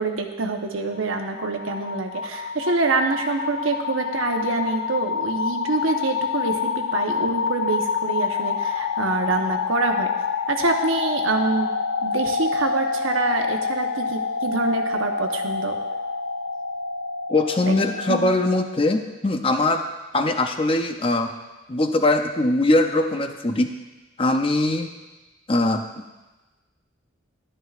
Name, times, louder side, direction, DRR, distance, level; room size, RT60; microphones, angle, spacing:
voice 1, 0.0-10.1 10.5-11.7 12.0-15.7 17.7-17.8 18.1-18.2, right 3 dB, 85° right, 3 dB, 1.0 m, -25 dB
sound 1, 1.0-18.8, left 5 dB, 85° left, 0.4 m, -27 dB
voice 2, 17.3-19.8 20.1-21.3 21.7-23.7 24.2-24.9 25.5-25.8, left 2 dB, 25° left, 6 dB, 0.5 m, -21 dB
12.0 x 11.0 x 2.5 m, 1.1 s
head